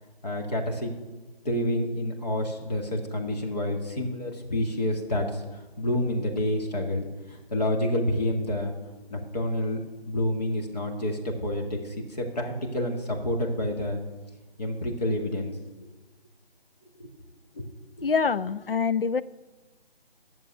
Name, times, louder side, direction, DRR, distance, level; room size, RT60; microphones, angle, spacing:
voice 1, 0.2-0.9 1.4-8.7 9.1-9.8 10.1-14.0 14.6-15.5 17.0-17.1 17.5-17.6 18.0-18.1, left 1 dB, 40° left, 2 dB, 2.3 m, -28 dB
voice 2, 18.0-19.2, left 5 dB, 60° left, 15 dB, 0.6 m, -25 dB
11.5 x 7.5 x 9.3 m, 1.2 s
figure-of-eight pair, 160°, 31 cm